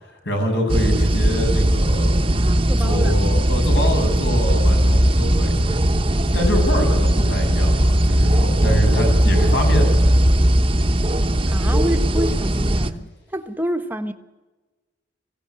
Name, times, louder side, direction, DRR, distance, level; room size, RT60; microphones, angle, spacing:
voice 1, 0.1-2.1 2.8-5.5 6.3-10.0, equal, 65° left, 7.5 m, -25 dB
sound 1, 0.7-12.9, right 1 dB, 30° right, 1.1 m, -18 dB
voice 2, 2.7-3.1 11.5-14.1, equal, 10° right, 1.3 m, -27 dB
22.5 x 16.0 x 9.7 m
head